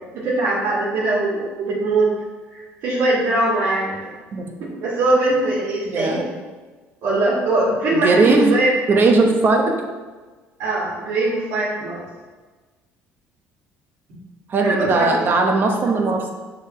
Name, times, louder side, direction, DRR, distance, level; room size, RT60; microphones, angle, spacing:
voice 1, 0.1-2.1 2.5-4.0 4.6-6.3 7.0-8.7 10.6-12.1 14.6-15.1, right 2 dB, 75° right, -8 dB, 1.9 m, -21 dB
voice 2, 5.8-6.2 7.9-8.5 8.9-9.7 14.5-16.3, right 3 dB, 40° right, 4 dB, 1.0 m, -18 dB
6.6 x 4.0 x 4.4 m, 1.3 s
cardioid pair, 95°, 5 cm